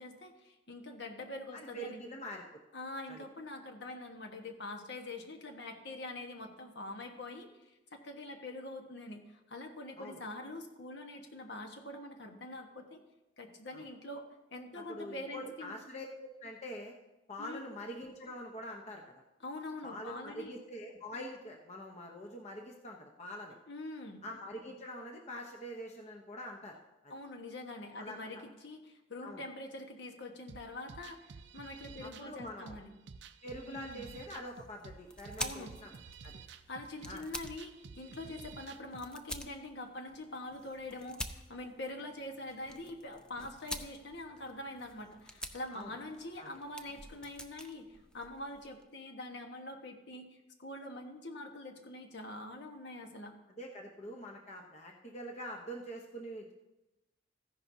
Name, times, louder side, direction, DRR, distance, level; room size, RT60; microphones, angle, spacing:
voice 1, 0.0-2.0 2.7-13.0 13.4-15.8 17.4-17.7 19.4-20.6 23.7-24.2 27.1-31.3 31.5-32.9 33.7-34.1 35.4-35.7 36.5-53.3, left 2 dB, 65° left, 3 dB, 1.3 m, -44 dB
voice 2, 1.5-2.4 3.1-3.2 10.0-10.2 13.7-13.8 14.7-16.9 17.3-19.0 19.8-23.6 24.2-26.8 27.0-27.1 28.0-28.4 29.2-29.4 32.0-32.8 33.4-35.9 36.2-36.4 37.1-37.2 45.7-45.9 46.4-46.5 53.6-56.5, equal, 35° left, 1 dB, 0.9 m, -45 dB
sound 1, 30.5-39.1, right 5 dB, 65° right, 0.5 m, -51 dB
sound 2, 34.3-48.8, left 1 dB, 5° left, 0.5 m, -48 dB
14.5 x 10.5 x 2.8 m, 0.99 s
head